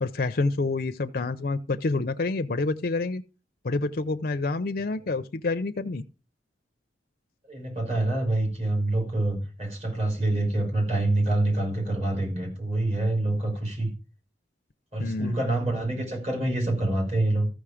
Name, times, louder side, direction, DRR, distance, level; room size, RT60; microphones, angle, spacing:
voice 1, 0.0-3.2 3.6-6.0 15.0-15.4, left 3 dB, 55° left, 0.5 m, -28 dB
voice 2, 7.5-13.9 14.9-17.5, right 2 dB, 35° right, 4.6 m, -26 dB
13.5 x 6.3 x 4.9 m
head